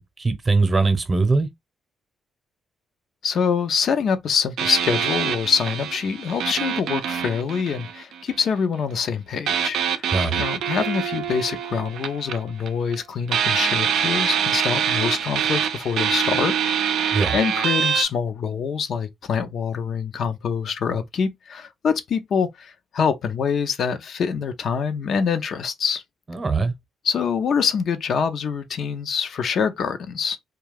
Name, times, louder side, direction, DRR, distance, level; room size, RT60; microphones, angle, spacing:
voice 1, 0.0-1.5 10.1-10.4 17.1-17.4 26.3-26.7, right 3 dB, 35° right, 0.8 m, -21 dB
voice 2, 3.2-26.0 27.0-30.4, left 6 dB, 65° left, 0.5 m, -25 dB
sound 1, 4.6-8.4 9.5-13.0 13.3-18.0, right 8 dB, 75° right, 0.4 m, -25 dB
2.3 x 2.3 x 3.2 m
cardioid pair, 75°, 0 cm